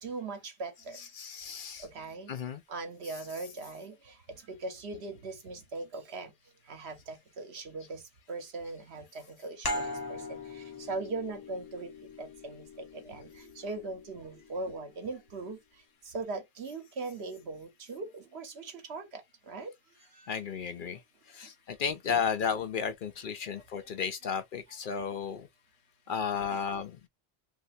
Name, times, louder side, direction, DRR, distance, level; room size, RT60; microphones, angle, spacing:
voice 1, 0.0-1.1 1.8-2.3 2.7-6.3 6.6-19.7 20.0-20.3 20.7-20.8 21.4-21.5 23.4-23.9 24.9-25.1 26.5-26.6, right 3 dB, 80° right, 1.3 m, -40 dB
voice 2, 1.0-1.9 2.3-2.6 20.3-21.0 21.3-25.5 26.1-27.0, left 6 dB, 60° left, 0.7 m, -33 dB
sound 1, 9.6-14.9, left 1 dB, 25° left, 0.8 m, -40 dB
3.2 x 2.7 x 2.6 m
omnidirectional pair, 1.1 m